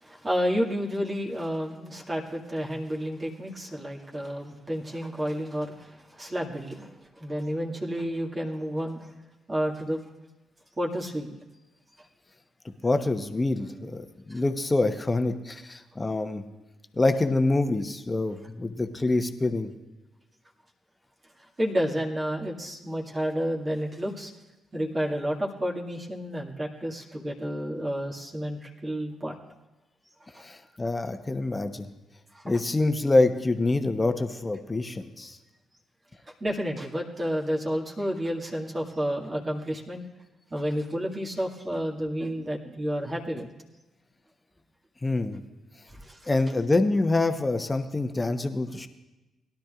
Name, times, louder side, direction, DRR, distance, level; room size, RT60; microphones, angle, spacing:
voice 1, 0.0-9.1 9.5-10.0 10.8-11.4 14.3-14.4 21.6-24.3 24.7-29.4 32.3-32.6 36.3-40.0 40.5-43.5 45.9-46.3, equal, 25° right, -1 dB, 2.1 m, -30 dB
voice 2, 12.8-16.4 17.0-19.7 30.4-31.9 32.4-35.4 45.0-45.4 46.3-48.9, left 2 dB, 25° left, 8 dB, 1.1 m, -26 dB
21.0 x 11.5 x 2.5 m, 1.1 s
figure-of-eight pair, 40°, 0 cm